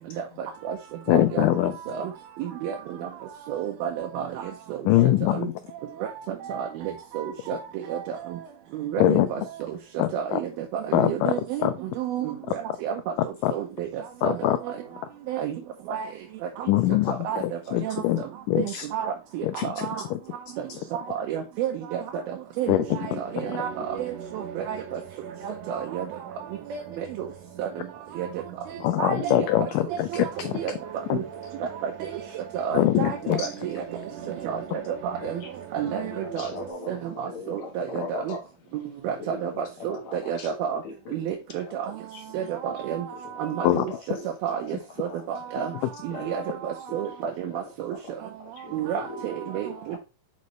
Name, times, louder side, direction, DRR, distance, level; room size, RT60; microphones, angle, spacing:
voice 1, 0.2-0.8 1.1-1.5 1.9-2.1 2.4-2.8 3.0-3.1 3.5-4.5 5.3-5.5 6.3-8.4 8.7-9.4 9.7-9.8 10.1-11.6 12.0-13.0 13.5-14.5 15.3-15.5 15.9-16.1 17.2-17.4 17.8-18.0 18.6-20.0 20.9-25.0 25.4-26.1 26.7-27.3 27.6-27.8 28.2-28.3 29.0-30.3 30.5-30.7 31.1-31.2 31.6-31.9 32.5-33.8 34.4-34.6 34.9-35.4 35.7-36.5 36.9-38.3 39.0-40.8 41.1-41.9 42.3-43.1 43.4-43.8 44.4-45.7 46.0-47.9 48.7-50.0, right 9 dB, 90° right, 2.7 m, -31 dB
voice 2, 1.1-1.7 4.9-5.5 9.0-9.3 10.0-10.4 10.9-11.3 11.6-11.7 13.4-13.5 14.2-14.6 16.7-18.2 18.5-18.9 19.6-19.9 20.1-20.2 22.7-23.0 23.4-23.5 28.8-30.5 31.1-31.2 32.7-33.5 43.6-43.9, left 14 dB, 85° left, 1.8 m, -23 dB
sound 1, 22.8-36.7, right 8 dB, 70° right, 2.3 m, -41 dB
voice 3, 35.8-38.4 39.2-40.5 40.8-41.1 42.1-42.2 42.6-43.0 43.9-44.3 45.1-45.2 46.1-47.0 47.9-48.1 48.4-50.0, left 4 dB, 60° left, 2.1 m, -40 dB
6.4 x 5.3 x 3.1 m
omnidirectional pair, 4.3 m